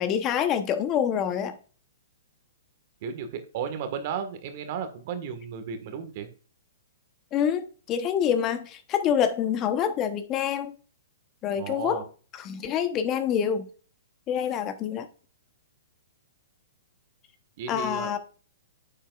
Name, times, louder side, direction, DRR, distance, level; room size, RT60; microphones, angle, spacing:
voice 1, 0.0-1.5 7.3-10.7 11.4-12.0 12.4-13.7 14.3-15.1 17.7-18.2, left 8 dB, 30° left, 0.9 m, -26 dB
voice 2, 3.0-6.3 11.5-12.0 17.6-18.1, right 7 dB, 50° right, 1.5 m, -34 dB
9.1 x 7.3 x 2.4 m
hypercardioid pair, 125°, 0 cm